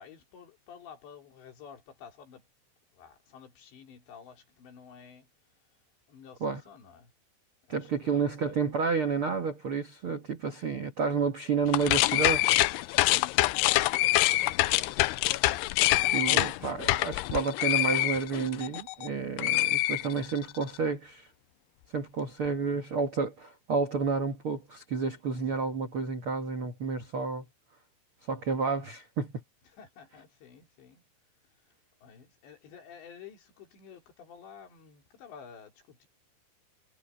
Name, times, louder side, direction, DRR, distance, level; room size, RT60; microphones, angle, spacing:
voice 1, 0.0-2.5 2.9-5.3 6.1-7.1 7.7-8.4 13.8-15.3 29.7-31.0 31.6-31.7 32.0-36.1, left 7 dB, 70° left, 5.7 m, -51 dB
voice 2, 7.7-12.4 15.9-21.3 21.9-27.4 28.3-29.4, right 5 dB, 90° right, 1.1 m, -30 dB
sound 1, 11.7-19.1 19.4-20.6, left 18 dB, 90° left, 2.4 m, -25 dB
omnidirectional pair, 5.3 m